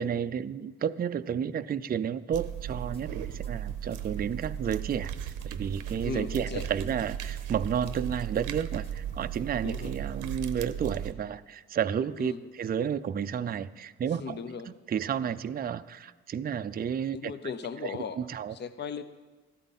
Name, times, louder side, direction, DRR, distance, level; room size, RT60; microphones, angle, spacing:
voice 1, 0.0-14.4 14.7-17.3 17.8-18.6, right 8 dB, 30° right, 11 dB, 0.5 m, -32 dB
sound 1, 2.3-11.1, right 10 dB, 90° right, 0.8 m, -36 dB
sound 2, 2.7-10.5, equal, 20° left, 1.6 m, -51 dB
voice 2, 6.0-6.7 9.6-9.9 12.2-12.4 14.2-14.7 17.1-18.2 18.5-19.0, left 6 dB, 35° left, 10 dB, 0.7 m, -37 dB
14.5 x 12.5 x 4.1 m, 1.3 s
cardioid pair, 90°, 30 cm